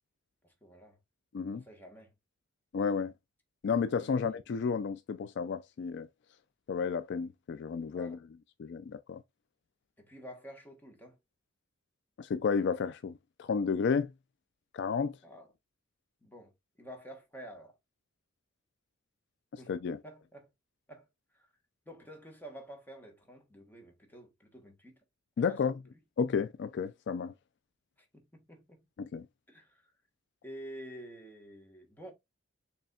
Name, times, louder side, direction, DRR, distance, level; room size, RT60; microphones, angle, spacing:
voice 1, 0.4-1.0 1.5-2.1 3.9-4.4 7.9-8.2 10.0-11.2 15.2-15.5 16.2-16.5 16.8-17.8 19.6-19.7 20.0-20.5 20.9-21.5 21.8-25.0 25.4-26.0 28.0-28.9 29.5-29.9 30.4-32.1, equal, 10° left, 1.3 m, -50 dB
voice 2, 2.7-3.1 3.6-6.1 6.7-8.2 8.6-9.2 12.2-13.1 13.4-14.1 14.7-15.2 19.7-20.0 25.4-25.7 26.2-27.3 29.0-29.3, left 5 dB, 55° left, 0.3 m, -31 dB
6.7 x 3.3 x 2.3 m
head